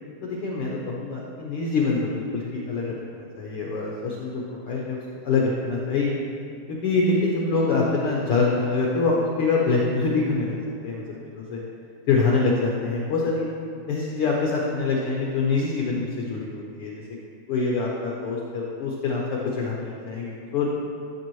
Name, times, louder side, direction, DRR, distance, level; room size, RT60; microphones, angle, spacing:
voice 1, 0.2-6.2 6.7-11.0 11.3-11.6 12.1-13.5 13.9-17.0 17.5-20.7, left 3 dB, 80° left, -3 dB, 1.2 m, -25 dB
13.0 x 6.9 x 3.1 m, 2.4 s
omnidirectional pair, 3.7 m